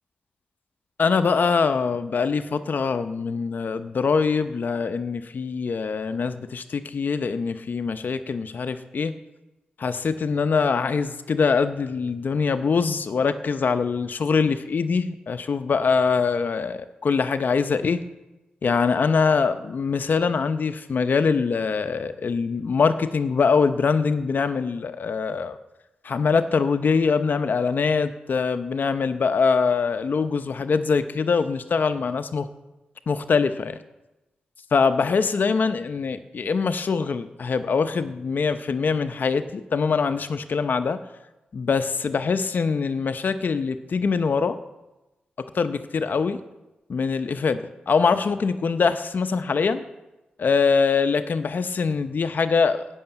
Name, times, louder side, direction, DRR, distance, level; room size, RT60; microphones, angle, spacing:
voice 1, 1.0-9.1 9.8-18.0 18.6-25.6 26.0-32.5 33.1-33.8 34.7-41.0 41.5-44.6 45.5-46.4 46.9-49.9 50.4-52.9, left 5 dB, 65° left, 10 dB, 0.7 m, -23 dB
14.0 x 6.5 x 9.0 m, 1.0 s
cardioid pair, 55°, 3 cm